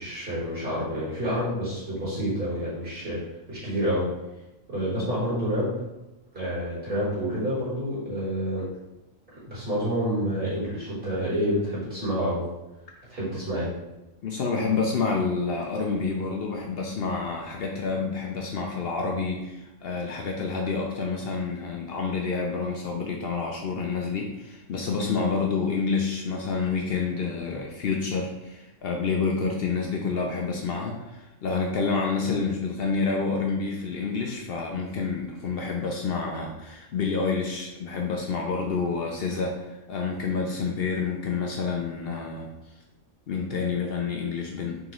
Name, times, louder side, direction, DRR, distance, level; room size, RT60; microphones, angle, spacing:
voice 1, 0.0-3.2 3.5-4.1 4.7-5.8 6.3-8.7 9.4-12.5 13.1-13.7, equal, 40° right, -9 dB, 1.6 m, -28 dB
voice 2, 14.2-42.5 43.3-44.8, left 4 dB, 60° left, 1 dB, 0.6 m, -28 dB
3.8 x 3.7 x 3.0 m, 0.99 s
omnidirectional pair, 1.4 m